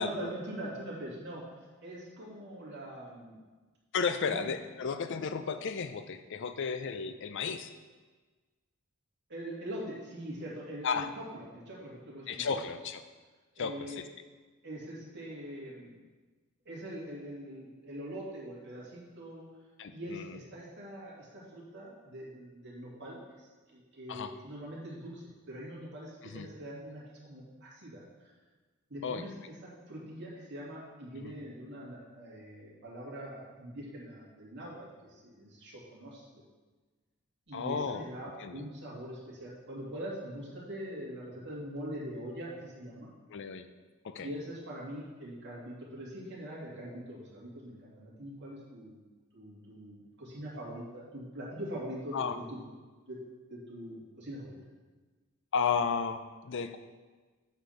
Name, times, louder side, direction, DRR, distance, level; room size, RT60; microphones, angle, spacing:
voice 1, 0.0-1.4 1.8-3.4 4.2-4.4 9.3-12.5 13.5-14.0 14.6-16.0 16.6-19.5 19.9-28.3 28.9-36.4 37.5-43.1 44.2-49.0 49.3-52.6 53.1-53.2 53.5-54.6, equal, 55° right, -5 dB, 2.6 m, -43 dB
voice 2, 3.9-7.7 10.8-11.1 12.3-13.0 13.6-14.1 19.8-20.4 24.1-24.3 26.3-26.5 29.0-29.2 31.2-31.3 37.5-38.1 38.4-38.6 43.3-43.7 44.0-44.3 52.1-52.4 55.5-56.8, left 5 dB, 60° left, 10 dB, 0.5 m, -33 dB
8.1 x 4.4 x 6.5 m, 1.3 s
head